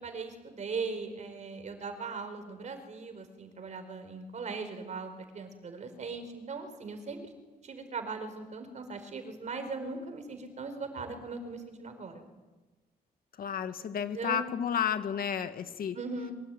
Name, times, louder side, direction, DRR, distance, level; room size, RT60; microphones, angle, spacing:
voice 1, 0.0-7.3 7.6-12.2 14.1-14.5 15.9-16.3, right 4 dB, 45° right, 8 dB, 4.5 m, -39 dB
voice 2, 13.4-16.0, left 8 dB, 65° left, 9 dB, 2.0 m, -32 dB
25.5 x 23.5 x 9.2 m, 1.2 s
wide cardioid pair, 150°, 16 cm